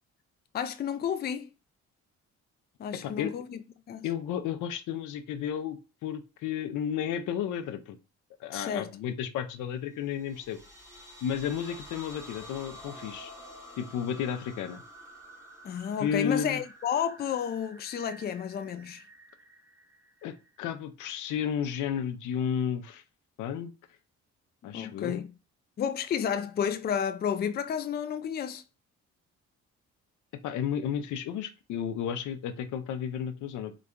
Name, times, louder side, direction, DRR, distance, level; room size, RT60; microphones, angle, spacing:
voice 1, 0.5-1.5 2.8-3.6 3.9-4.1 8.5-8.9 15.6-19.0 24.7-25.3 25.8-28.6, left 8 dB, 35° left, 0.4 m, -31 dB
voice 2, 3.0-3.3 4.0-8.0 8.4-10.6 11.2-13.3 13.8-14.8 16.0-16.6 20.2-23.0 23.4-23.7 24.6-25.2 30.4-33.8, left 8 dB, 80° left, 0.6 m, -32 dB
sound 1, 10.1-20.7, equal, 10° right, 0.9 m, -49 dB
4.0 x 2.2 x 3.6 m
cardioid pair, 90°, 30 cm